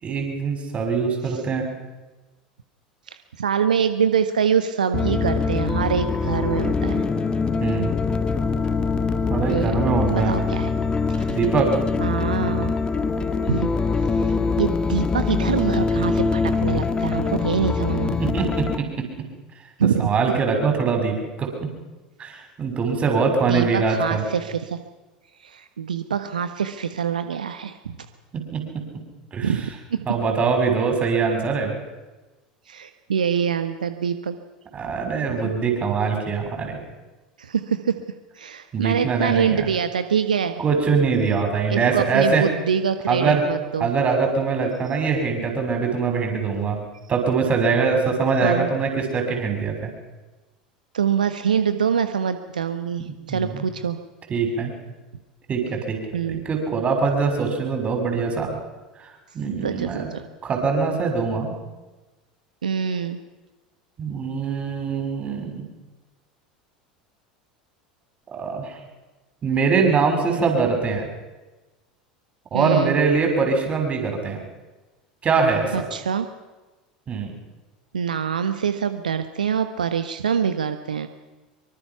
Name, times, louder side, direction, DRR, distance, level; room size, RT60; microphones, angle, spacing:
voice 1, 0.0-1.7 7.6-7.9 9.3-10.3 11.3-11.7 18.2-19.1 19.8-21.5 22.2-24.3 28.3-28.6 29.3-29.8 30.0-31.7 34.7-36.8 38.7-39.7 40.6-42.5 43.1-43.4 43.8-46.8 47.1-49.9 53.0-53.7 54.3-54.7 55.5-56.0 56.3-58.6 59.3-60.1 60.4-61.5 64.0-65.6 68.3-68.7 69.4-71.1 72.5-74.4 75.2-75.9 77.1-77.3, right 5 dB, 30° right, 3 dB, 6.6 m, -23 dB
voice 2, 3.1-7.0 9.5-9.7 10.1-10.8 11.1-11.4 12.0-12.7 13.4-13.7 14.0-18.2 19.8-20.1 23.5-24.8 25.4-28.0 29.4-30.1 32.7-34.4 35.3-35.5 37.4-38.0 38.3-40.6 41.7-43.9 44.8-44.9 48.4-48.7 50.9-54.0 56.1-56.5 59.6-60.2 62.6-63.2 72.5-73.0 75.7-76.3 77.9-81.1, right 7 dB, 75° right, 9 dB, 1.2 m, -25 dB
sound 1, 4.9-18.8, left 4 dB, 20° left, 1.8 m, -23 dB
25.0 x 24.5 x 5.9 m, 1.2 s
figure-of-eight pair, 75°, 4 cm